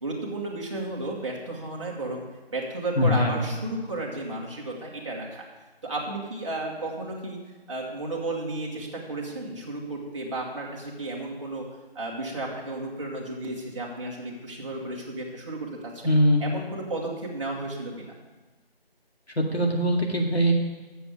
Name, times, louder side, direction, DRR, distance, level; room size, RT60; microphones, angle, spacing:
voice 1, 0.0-2.2 2.5-5.4 5.8-7.4 7.7-11.7 11.9-16.1 16.4-18.1, right 2 dB, 30° right, -4 dB, 1.4 m, -33 dB
voice 2, 3.0-3.4 16.0-16.4 19.4-20.5, equal, 90° left, 1 dB, 2.2 m, -22 dB
7.2 x 7.0 x 7.8 m, 1.2 s
figure-of-eight pair, 165°, 31 cm